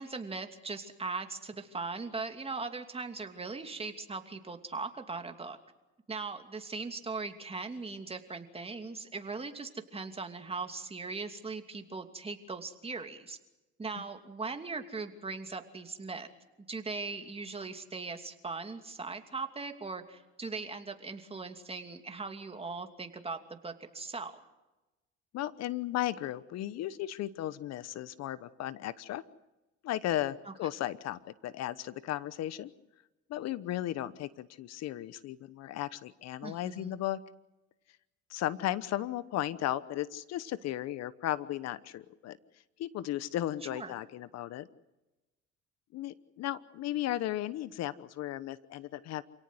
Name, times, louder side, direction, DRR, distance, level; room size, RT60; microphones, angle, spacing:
voice 1, 0.0-5.6 6.1-13.4 13.8-16.3 16.7-24.4 30.5-30.6 36.4-37.0 43.7-43.9, right 4 dB, 20° right, 6 dB, 2.8 m, -39 dB
voice 2, 25.3-29.2 29.8-32.7 33.3-37.2 38.3-42.4 42.8-44.7 45.9-49.2, left 13 dB, 60° left, 16 dB, 1.1 m, -35 dB
28.0 x 18.0 x 7.9 m, 1.1 s
supercardioid pair, 100°, 29 cm